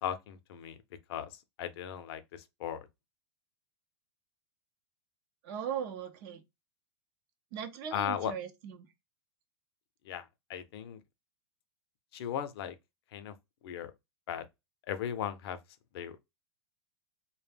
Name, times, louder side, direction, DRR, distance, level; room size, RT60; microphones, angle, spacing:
voice 1, 0.0-0.8 1.1-1.3 1.6-2.8 7.9-8.3 10.1-10.2 10.5-11.0 12.1-12.7 13.1-13.3 13.6-13.9 14.3-14.5 14.9-15.6 15.9-16.2, left 9 dB, 60° left, 0.5 m, -36 dB
voice 2, 5.4-6.4 7.5-8.9, right 8 dB, 45° right, 0.6 m, -38 dB
2.2 x 2.1 x 3.3 m
hypercardioid pair, 135°, 15 cm